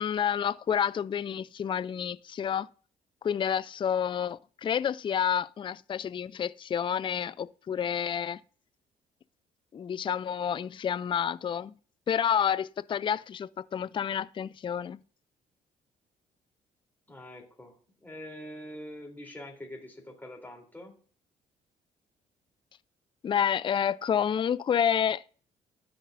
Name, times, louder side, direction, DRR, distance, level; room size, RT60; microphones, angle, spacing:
voice 1, 0.0-2.7 3.2-8.4 9.7-11.7 12.1-15.0 23.2-25.2, left 8 dB, 30° left, 0.4 m, -29 dB
voice 2, 17.1-17.7 18.0-20.9, left 1 dB, 10° left, 3.3 m, -44 dB
13.0 x 5.3 x 2.6 m
hypercardioid pair, 55°, 17 cm